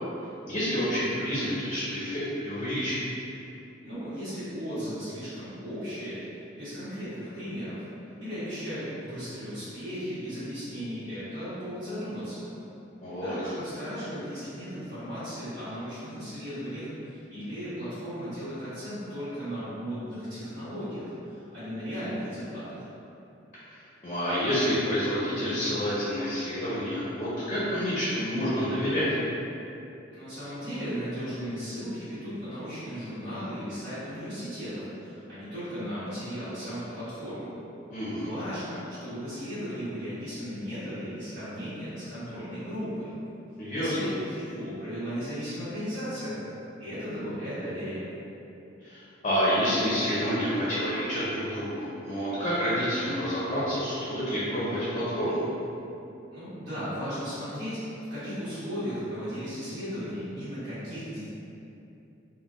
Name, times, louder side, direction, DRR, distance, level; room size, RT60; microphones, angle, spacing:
voice 1, 0.5-3.0 13.0-13.3 24.0-29.1 37.9-38.3 43.6-44.0 48.8-55.4, equal, 35° left, -10 dB, 0.6 m, -28 dB
voice 2, 3.8-6.2 6.5-7.8 8.2-12.5 13.2-22.8 30.1-37.5 38.1-43.1 43.7-46.3 46.8-48.0 56.3-61.3, equal, 65° right, -17 dB, 1.3 m, -36 dB
3.6 x 2.2 x 2.5 m, 2.8 s
head